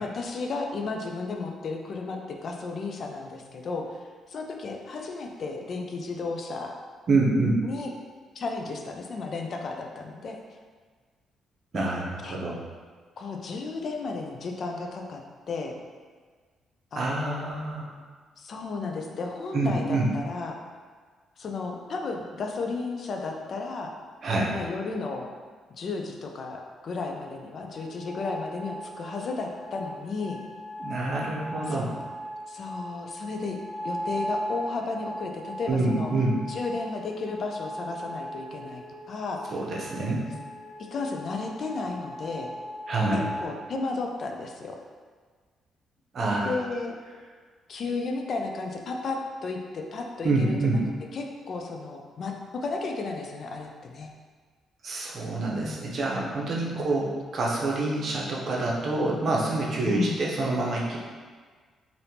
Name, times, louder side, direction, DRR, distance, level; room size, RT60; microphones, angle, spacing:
voice 1, 0.0-4.0 4.3-6.7 7.6-7.9 8.4-10.4 11.7-12.4 13.2-15.2 15.5-15.7 16.9-17.6 18.4-20.6 21.4-23.9 24.5-25.3 25.8-30.4 31.7-32.0 32.5-33.6 33.8-36.1 36.5-39.4 40.9-42.5 43.1-44.8 46.4-47.0 47.7-50.8 51.1-54.1 55.6-56.0 56.7-57.1 59.8-60.2, left 3 dB, 55° left, 2 dB, 0.4 m, -33 dB
voice 2, 7.1-7.6 11.7-12.6 16.9-17.9 19.5-20.1 24.2-24.5 30.8-31.9 35.7-36.3 39.5-40.3 42.9-43.3 46.1-46.5 50.2-50.8 54.8-61.0, right 2 dB, 55° right, -3 dB, 0.7 m, -26 dB
sound 1, 27.7-43.5, equal, 85° left, 0.7 m, -38 dB
3.4 x 2.6 x 2.8 m, 1.5 s
cardioid pair, 90°, 0 cm